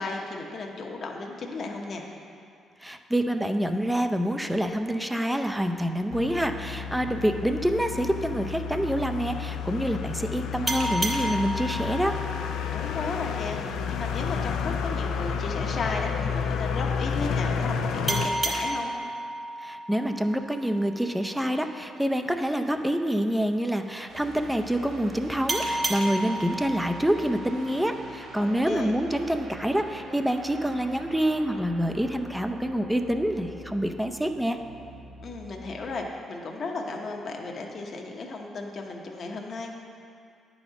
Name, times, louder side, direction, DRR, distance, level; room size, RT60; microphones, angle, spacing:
voice 1, 0.0-2.0 12.7-18.9 28.4-28.9 35.2-39.7, left 3 dB, 50° left, 1 dB, 0.9 m, -35 dB
voice 2, 2.8-12.2 19.6-34.6, equal, 5° right, 6 dB, 0.5 m, -27 dB
sound 1, 6.1-18.3, left 6 dB, 85° left, 0.4 m, -31 dB
sound 2, 10.7-13.9 18.1-21.3 25.5-28.4, right 1 dB, 30° right, 0.9 m, -32 dB
sound 3, 24.1-36.1, right 2 dB, 85° right, 1.3 m, -44 dB
9.5 x 4.2 x 5.8 m, 2.4 s
cardioid pair, 90°, 0 cm